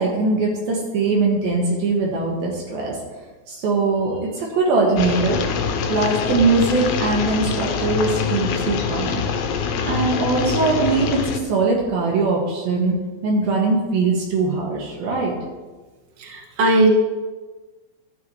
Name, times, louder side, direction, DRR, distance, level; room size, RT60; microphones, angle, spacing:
voice 1, 0.0-3.0 3.5-5.4 5.9-9.5 9.9-13.0 13.2-15.4, right 3 dB, 70° right, -2 dB, 2.9 m, -21 dB
sound 1, 5.0-11.4, left 6 dB, 85° left, 1.7 m, -24 dB
voice 2, 16.2-16.9, right 2 dB, 45° right, -3 dB, 2.4 m, -18 dB
13.5 x 7.8 x 3.1 m, 1.3 s
omnidirectional pair, 4.6 m